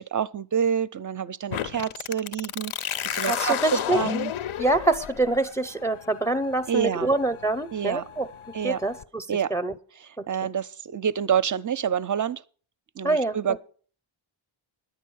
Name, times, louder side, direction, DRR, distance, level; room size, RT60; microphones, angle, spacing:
voice 1, 0.0-4.3 6.7-7.1 7.7-8.0 8.5-8.8 9.3-9.5 10.3-12.4 13.0-13.6, right 8 dB, 40° right, 0.4 m, -27 dB
sound 1, 1.5-9.0, left 10 dB, 75° left, 0.6 m, -33 dB
voice 2, 3.2-4.0 4.6-8.3 8.6-9.3 9.5-9.7 10.2-10.5 13.0-13.4, right 2 dB, 5° left, 0.5 m, -25 dB
10.0 x 9.2 x 6.2 m
wide cardioid pair, 95°, 50 cm